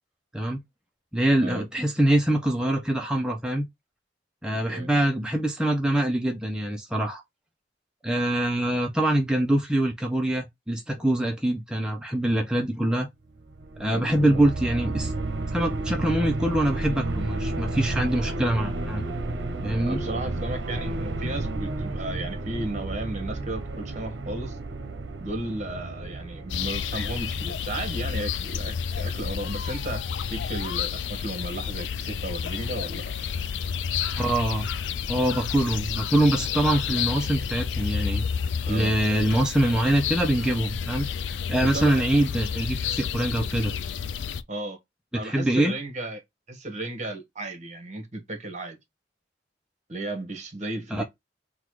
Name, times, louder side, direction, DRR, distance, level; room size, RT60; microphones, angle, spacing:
voice 1, 1.1-3.7 4.4-7.2 8.0-13.1 13.8-15.1 15.5-19.0 19.6-20.0 34.2-34.7 35.1-38.2 38.7-41.1 41.5-43.7 45.2-45.7 50.9-51.0, right 1 dB, 5° right, 0.5 m, -24 dB
voice 2, 4.5-4.9 13.9-14.5 19.8-24.6 25.2-33.1 38.6-39.0 41.6-42.0 44.5-44.8 45.1-46.2 46.5-48.8 49.9-51.0, right 1 dB, 40° right, 1.3 m, -34 dB
sound 1, 13.4-28.4, right 2 dB, 75° right, 0.7 m, -32 dB
sound 2, 26.5-44.4, left 7 dB, 80° left, 0.4 m, -30 dB
3.9 x 2.3 x 4.6 m
head